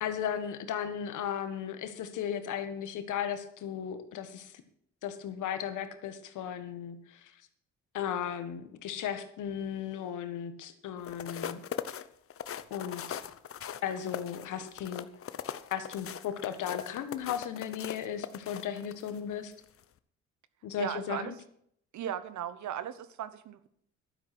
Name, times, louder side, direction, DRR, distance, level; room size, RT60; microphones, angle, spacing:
voice 1, 0.0-4.5 5.0-7.3 7.9-11.6 12.7-13.2 13.8-15.1 15.7-19.5 20.6-21.3, left 9 dB, 80° left, 10 dB, 1.5 m, -36 dB
sound 1, 11.0-19.2 19.6-19.8, left 9 dB, 50° left, 0.8 m, -40 dB
voice 2, 20.8-21.3 21.9-23.7, right 10 dB, 70° right, 15 dB, 1.1 m, -37 dB
12.0 x 9.7 x 6.1 m, 0.69 s
cardioid pair, 90°, 30 cm